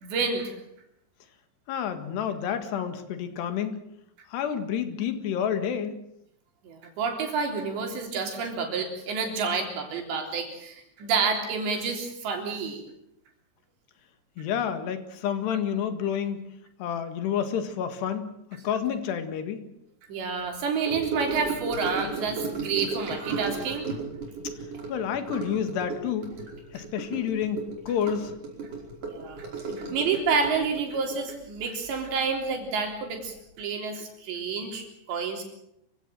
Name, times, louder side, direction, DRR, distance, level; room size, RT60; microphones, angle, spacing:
voice 1, 0.0-0.6 6.6-12.8 20.1-23.9 29.0-35.4, right 5 dB, 90° right, 3 dB, 5.8 m, -29 dB
voice 2, 1.7-3.8 4.3-6.0 14.4-16.4 16.8-18.3 18.6-19.6 24.4-24.5 24.9-26.3 26.7-28.4, left 8 dB, 75° left, 9 dB, 3.9 m, -29 dB
Gurgling / Sink (filling or washing) / Trickle dribble, 20.9-32.5 32.8-33.1 33.4-33.5, right 4 dB, 50° right, 6.4 m, -35 dB
26.0 x 16.5 x 7.6 m, 0.79 s
omnidirectional pair, 4.9 m